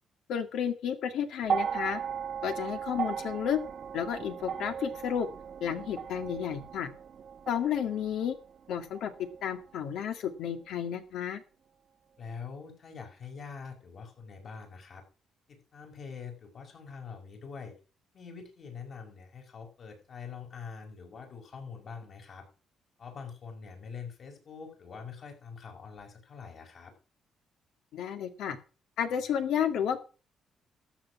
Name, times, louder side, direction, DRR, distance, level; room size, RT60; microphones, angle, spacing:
voice 1, 0.3-2.0 2.4-3.6 3.9-5.3 5.6-6.9 7.5-8.4 8.7-9.1 9.4-11.4 27.9-28.6 29.0-30.0, left 8 dB, 80° left, 8 dB, 2.0 m, -32 dB
sound 1, 1.4-9.8 10.8-10.9, right 7 dB, 55° right, 1.1 m, -37 dB
voice 2, 12.2-15.0 15.5-17.7 18.1-22.5 23.0-26.9, left 5 dB, 55° left, 3 dB, 5.5 m, -44 dB
13.0 x 8.0 x 6.0 m, 0.36 s
cardioid pair, 90°, 0 cm